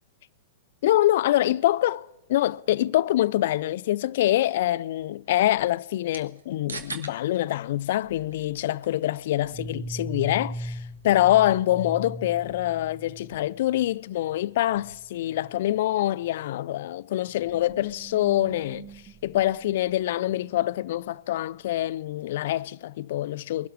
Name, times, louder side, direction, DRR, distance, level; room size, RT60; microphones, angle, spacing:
voice 1, 0.8-18.9 19.2-23.7, left 14 dB, 60° left, 0.4 m, -25 dB
sound 1, 4.5-15.1, right 4 dB, 85° right, 1.5 m, -48 dB
sound 2, 8.1-8.5 9.4-13.9 14.2-14.4 14.7-15.0 15.3-15.6 16.2-16.3 17.3-20.5, right 1 dB, 30° right, 1.7 m, -40 dB
22.0 x 12.5 x 4.7 m
hypercardioid pair, 110°, 0 cm